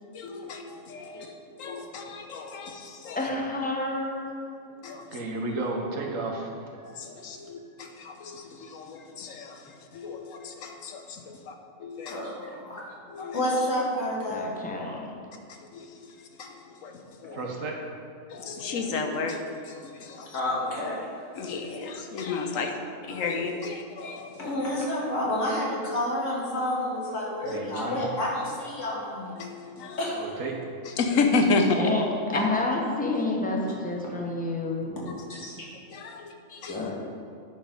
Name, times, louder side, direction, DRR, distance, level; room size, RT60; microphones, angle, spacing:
voice 1, 0.1-1.3 1.6-3.3 4.8-5.0 6.8-11.5 11.8-12.2 13.1-13.5 15.5-16.1 16.4-17.4 18.3-20.4 21.3-22.7 23.1-24.5 27.5-27.6 29.4-30.0 31.0-31.9 32.3-32.4 35.3-35.4 35.9-36.9, left 3 dB, 90° left, 4 dB, 1.2 m, -32 dB
voice 2, 3.1-4.9 8.8-9.0 14.3-15.1 28.5-28.6 31.7-35.1 35.6-35.7 36.7-37.0, left 2 dB, 5° left, -1 dB, 0.9 m, -30 dB
voice 3, 5.1-6.9 17.3-17.8 27.4-28.0 30.1-30.6, right 2 dB, 85° right, 1 dB, 1.5 m, -33 dB
voice 4, 12.1-12.8 13.3-14.5 20.3-21.0 24.4-29.4 30.0-30.2 34.0-34.1 35.4-35.7, left 1 dB, 70° left, -5 dB, 2.2 m, -29 dB
9.7 x 5.0 x 5.2 m, 2.3 s
omnidirectional pair, 1.3 m